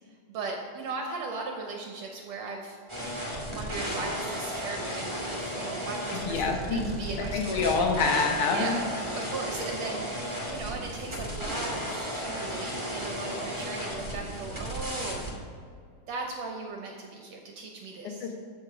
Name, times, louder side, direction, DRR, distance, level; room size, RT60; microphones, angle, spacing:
voice 1, 0.3-2.8 3.5-7.7 8.5-8.8 9.1-10.1 10.5-15.2 16.1-18.3, right 3 dB, 70° right, 2 dB, 1.8 m, -37 dB
sound 1, 2.9-15.3, equal, 15° right, 0.9 m, -34 dB
voice 2, 6.2-6.9 7.3-8.8 18.2-18.4, left 4 dB, 70° left, 2 dB, 2.4 m, -26 dB
14.0 x 5.0 x 5.0 m, 2.2 s
omnidirectional pair, 3.7 m